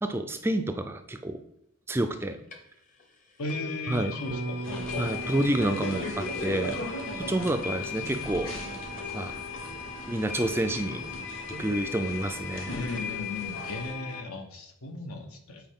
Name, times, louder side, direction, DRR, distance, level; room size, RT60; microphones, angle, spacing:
voice 1, 0.0-1.4 1.9-2.4 3.9-4.2 5.0-6.8 7.1-8.5 9.1-9.3 10.1-11.1 11.6-12.8, right 1 dB, 10° right, 8 dB, 0.3 m, -29 dB
sound 1, 2.2-2.3 2.5-2.6 3.0-3.1 3.5-14.2, left 8 dB, 35° left, 0.8 m, -39 dB
voice 2, 3.4-5.1 12.7-15.6, left 2 dB, 85° left, 5 dB, 1.0 m, -36 dB
Bass guitar, 4.3-12.4, right 4 dB, 85° right, 0.5 m, -43 dB
sound 2, 4.6-13.9, left 1 dB, 60° left, 1.1 m, -38 dB
7.8 x 4.4 x 3.6 m, 0.81 s
head